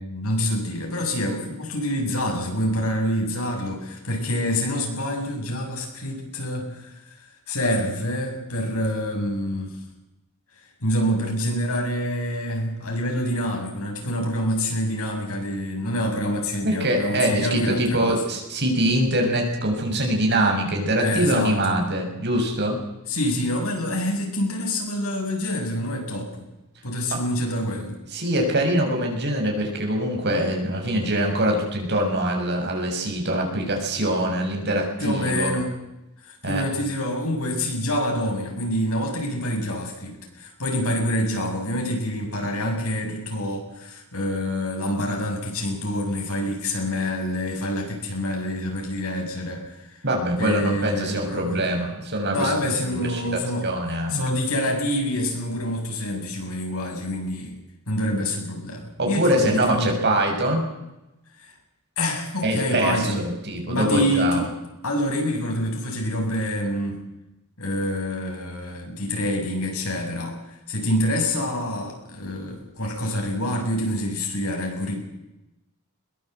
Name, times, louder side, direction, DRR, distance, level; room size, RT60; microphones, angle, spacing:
voice 1, 0.0-7.2 7.5-9.8 10.8-18.2 21.0-21.8 23.1-26.4 26.8-28.0 35.0-35.7 36.2-50.0 50.4-51.7 52.3-53.7 54.1-57.6 57.9-59.9 61.4-61.5 62.0-63.2 63.7-64.5 64.8-67.0 67.6-75.0, left 1 dB, 75° left, 1 dB, 7.2 m, -26 dB
voice 2, 16.6-22.8 27.1-27.2 28.1-35.5 36.4-36.7 50.0-54.2 59.0-60.7 62.4-64.5, right 1 dB, 50° right, 2 dB, 6.8 m, -24 dB
21.5 x 21.0 x 8.1 m, 0.94 s
head